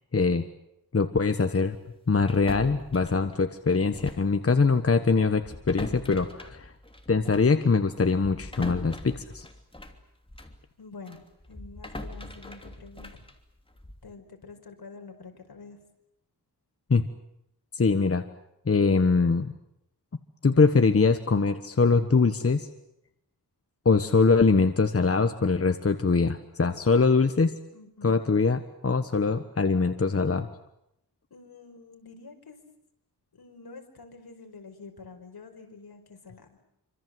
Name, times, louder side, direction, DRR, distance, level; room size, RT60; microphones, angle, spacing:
voice 1, 0.1-0.4 0.9-1.8 2.1-6.7 7.1-9.4 16.9-17.0 17.7-18.2 18.7-19.5 20.4-22.7 23.8-27.5 28.0-30.5, left 4 dB, 35° left, 8 dB, 1.3 m, -23 dB
sound 1, 2.3-4.3 4.6-4.8 5.4-10.6 11.1-14.1, left 1 dB, 15° left, 2.9 m, -42 dB
voice 2, 10.8-11.2 11.5-13.2 14.0-15.8 27.7-28.2 31.3-32.6 33.3-36.6, left 4 dB, 70° left, 4 dB, 5.1 m, -47 dB
27.0 x 26.0 x 7.9 m, 0.81 s
wide cardioid pair, 115°, 39 cm